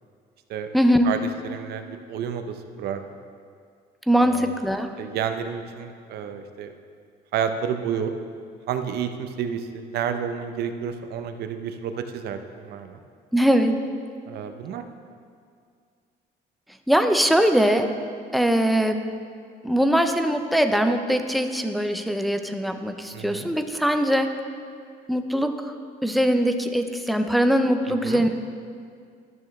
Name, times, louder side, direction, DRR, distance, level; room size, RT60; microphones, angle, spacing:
voice 1, 0.7-1.1 4.1-4.9 13.3-13.8 16.9-17.9 18.3-19.0 19.6-24.3 25.1-25.6 26.0-28.3, equal, ahead, 6 dB, 0.5 m, -21 dB
voice 2, 1.4-2.4 2.8-3.0 4.2-4.5 5.0-6.7 7.3-8.1 8.7-13.0 14.3-14.8 23.1-23.5 28.0-28.2, right 8 dB, 70° right, 7 dB, 0.7 m, -30 dB
12.0 x 6.4 x 3.2 m, 2.2 s
cardioid pair, 110°, 17 cm